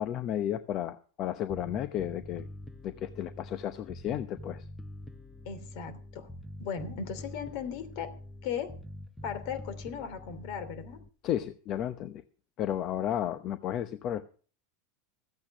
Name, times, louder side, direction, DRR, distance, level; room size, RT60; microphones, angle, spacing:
voice 1, 0.0-2.5 2.8-4.6 11.2-12.2 12.6-14.2, left 11 dB, 45° left, 11 dB, 0.8 m, -33 dB
Bass guitar, 1.5-11.1, left 1 dB, 5° left, 0.8 m, -45 dB
voice 2, 5.4-6.3 6.6-8.1 8.4-8.7 9.2-11.0, left 7 dB, 60° left, 10 dB, 3.0 m, -37 dB
14.0 x 8.5 x 6.0 m, 0.42 s
supercardioid pair, 120°, 0 cm